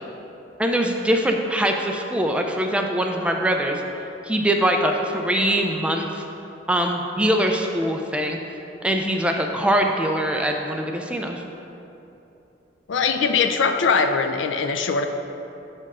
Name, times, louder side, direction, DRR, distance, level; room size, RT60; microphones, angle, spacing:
voice 1, 0.6-3.8 4.3-6.2 6.7-8.4 8.8-11.4, right 1 dB, 5° right, 2 dB, 0.3 m, -22 dB
voice 2, 12.9-15.1, left 5 dB, 80° left, 7 dB, 0.4 m, -21 dB
5.4 x 4.4 x 6.0 m, 3.0 s
head